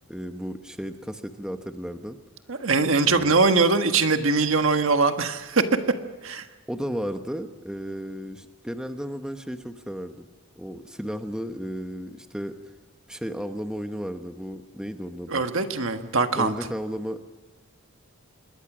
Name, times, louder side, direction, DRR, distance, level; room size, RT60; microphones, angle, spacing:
voice 1, 0.1-2.2 3.1-3.4 6.7-10.3 10.6-12.6 13.1-15.4 16.4-17.2, equal, 5° right, 6 dB, 1.0 m, -34 dB
voice 2, 2.5-5.6 6.2-6.4 15.3-16.5, right 4 dB, 65° right, 7 dB, 1.6 m, -22 dB
27.0 x 21.5 x 6.2 m, 1.3 s
head